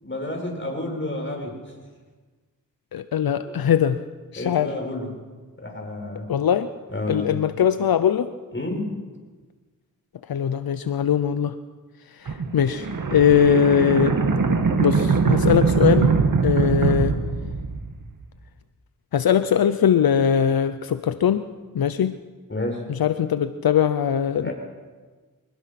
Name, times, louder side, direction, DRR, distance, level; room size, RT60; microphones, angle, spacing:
voice 1, 0.0-1.6 3.5-3.6 4.4-5.1 5.6-6.3 6.9-7.4 8.5-9.0 22.5-22.8 24.4-24.5, left 1 dB, 35° left, 2 dB, 7.7 m, -30 dB
voice 2, 2.9-4.0 4.3-4.7 6.3-6.7 7.1-8.3 10.3-11.6 12.1-14.2 14.8-16.2 16.4-17.2 19.1-21.5 21.7-22.2 22.9-24.5, left 8 dB, 80° left, 11 dB, 0.8 m, -21 dB
sound 1, 12.3-18.1, right 4 dB, 65° right, 2.2 m, -22 dB
24.5 x 20.0 x 6.0 m, 1.4 s
cardioid pair, 40°, 35 cm